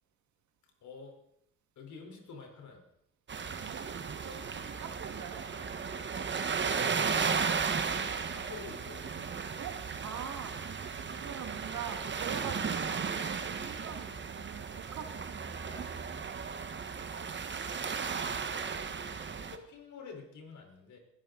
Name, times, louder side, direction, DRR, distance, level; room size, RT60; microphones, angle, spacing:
voice 1, 0.8-1.2 1.8-2.8 8.3-9.3 17.8-18.6 19.2-21.0, left 5 dB, 70° left, 2 dB, 4.2 m, -49 dB
sound 1, 3.3-19.6, right 6 dB, 40° right, 1.3 m, -35 dB
voice 2, 3.6-5.4 9.6-9.8 10.0-10.6 11.2-15.9, right 8 dB, 70° right, 6 dB, 2.0 m, -44 dB
20.5 x 11.5 x 3.9 m, 0.76 s
cardioid pair, 90°, 30 cm